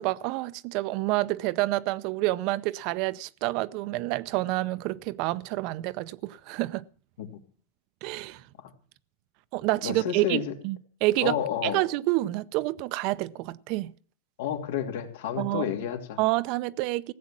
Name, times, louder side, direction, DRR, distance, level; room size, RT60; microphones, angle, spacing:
voice 1, 0.0-6.8 8.0-8.4 9.5-11.4 11.6-13.9 15.4-15.7 16.2-17.1, right 18 dB, 50° right, 0.6 m, -28 dB
voice 2, 9.8-10.5 11.2-11.8 14.4-16.2, left 9 dB, 80° left, 2.6 m, -30 dB
15.5 x 8.5 x 7.4 m
supercardioid pair, 140°, 0 cm